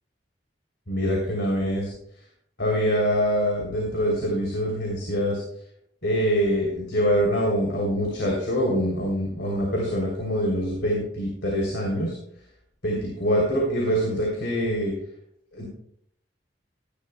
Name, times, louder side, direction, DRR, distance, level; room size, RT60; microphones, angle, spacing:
voice 1, 0.9-1.9 2.6-5.4 6.0-12.1 12.8-14.9 15.5-15.7, equal, 70° left, -2 dB, 3.2 m, -24 dB
17.0 x 11.5 x 2.2 m, 0.67 s
head